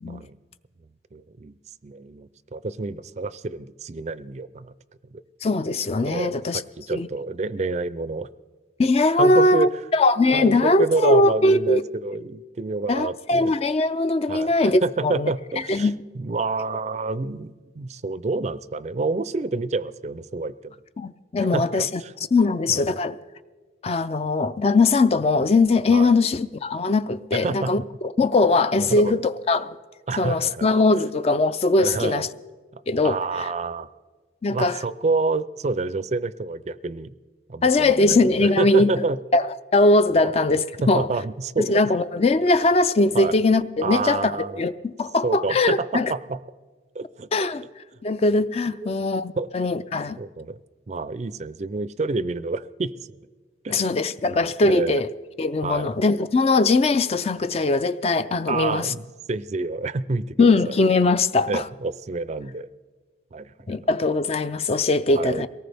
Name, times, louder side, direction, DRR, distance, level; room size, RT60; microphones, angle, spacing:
voice 1, 0.1-0.4 1.1-1.6 1.8-4.7 5.1-5.2 6.1-8.3 9.2-9.7 10.3-13.5 14.3-20.8 21.5-22.1 22.7-22.9 25.9-26.1 27.3-27.9 28.8-29.2 30.1-30.7 31.8-32.3 32.7-33.9 34.5-37.1 37.5-39.2 40.2-40.3 40.8-41.8 43.1-43.4 43.8-44.6 45.2-46.4 46.9-47.3 48.8-48.9 49.3-49.5 50.2-50.6 50.9-52.9 53.6-53.9 54.3-55.0 55.6-55.9 58.5-60.7 61.5-62.7 63.3-63.7 65.1-65.4, right 3 dB, 35° right, 0.4 m, -28 dB
voice 2, 5.4-6.6 6.9-7.1 8.8-11.8 12.9-15.3 15.7-16.0 21.0-22.0 22.3-23.2 23.8-29.8 30.2-32.3 32.9-33.2 34.4-34.8 37.6-38.9 39.3-39.5 39.7-41.1 41.6-44.3 44.6-46.1 47.3-47.6 48.0-50.2 53.7-55.1 55.4-58.9 60.4-61.6 63.7-65.5, left 2 dB, 35° left, 0.4 m, -20 dB
23.0 x 18.5 x 3.4 m
head